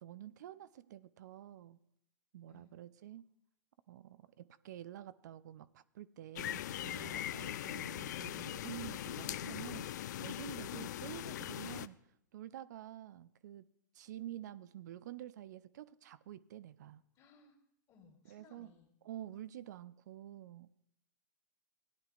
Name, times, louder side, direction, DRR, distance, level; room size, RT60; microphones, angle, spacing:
voice 1, 0.0-1.8 2.3-3.2 3.9-12.0 12.3-13.7 13.9-17.0 18.3-18.7 19.0-20.7, right 12 dB, 65° right, 15 dB, 0.4 m, -49 dB
sound 1, 6.4-11.9, left 12 dB, 65° left, 0.4 m, -41 dB
voice 2, 17.1-17.6 17.9-18.9, left 4 dB, 35° left, 0 dB, 2.6 m, -63 dB
16.5 x 9.8 x 2.5 m, 0.76 s
hypercardioid pair, 105°, 10 cm